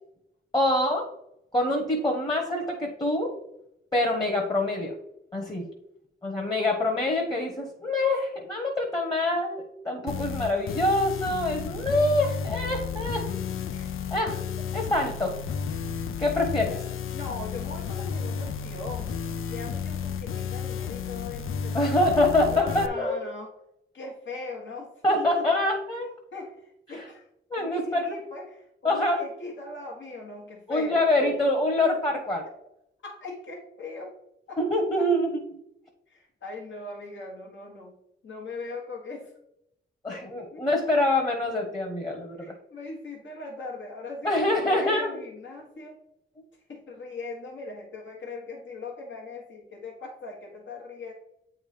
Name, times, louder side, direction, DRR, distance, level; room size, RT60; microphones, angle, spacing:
voice 1, 0.5-1.1 1.5-3.3 3.9-4.9 5.3-5.7 6.2-13.3 14.1-14.4 14.7-15.4 16.2-16.8 21.7-23.2 25.0-26.1 26.9-27.1 27.5-28.2 28.8-29.2 30.7-32.4 34.6-35.6 40.0-42.5 44.2-45.1, left 1 dB, 20° left, 1 dB, 1.2 m, -25 dB
sound 1, 10.1-22.9, left 7 dB, 85° left, 0.5 m, -32 dB
voice 2, 17.1-22.1 22.5-23.5 23.9-25.4 26.3-27.3 27.6-31.5 33.0-34.1 34.5-34.6 35.0-35.1 36.1-37.9 38.2-39.3 40.1-40.7 42.4-46.0 46.7-51.1, left 3 dB, 65° left, -1 dB, 1.4 m, -40 dB
8.4 x 3.6 x 5.0 m, 0.81 s
wide cardioid pair, 100°, 21 cm